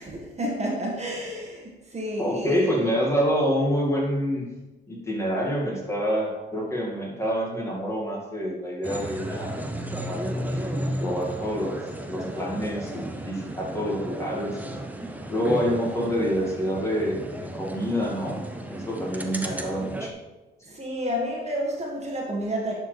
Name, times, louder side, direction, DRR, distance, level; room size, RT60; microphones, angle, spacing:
voice 1, 0.0-2.8 20.7-22.7, equal, 35° right, -2 dB, 1.6 m, -30 dB
voice 2, 2.2-4.5 4.9-9.6 9.9-11.8 12.1-14.8 15.3-18.4 18.7-20.1, equal, 15° left, -3 dB, 2.0 m, -27 dB
sound 1, 8.8-20.1, right 1 dB, 10° right, 0.7 m, -34 dB
11.0 x 4.5 x 3.3 m, 1.1 s
cardioid pair, 90°, 20 cm